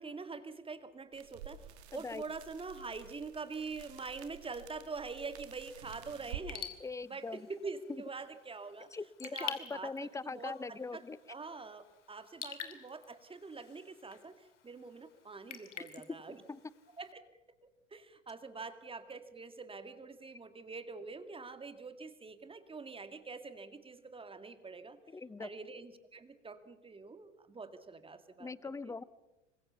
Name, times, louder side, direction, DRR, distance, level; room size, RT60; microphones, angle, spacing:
voice 1, 0.0-6.7 7.0-8.9 9.2-11.0 11.3-16.4 17.0-17.4 17.9-25.0 25.4-28.5 28.8-28.9, right 4 dB, 15° right, 10 dB, 2.2 m, -45 dB
sound 1, 1.1-6.5, right 11 dB, 60° right, 2.3 m, -50 dB
voice 2, 1.9-2.2 6.8-7.5 8.9-11.2 16.5-16.6 25.1-25.5 28.4-29.0, left 4 dB, 10° left, 19 dB, 0.9 m, -41 dB
Raindrop / Drip, 6.4-17.1, left 8 dB, 75° left, 2.8 m, -49 dB
27.0 x 24.0 x 7.0 m, 0.99 s
figure-of-eight pair, 80°, 36 cm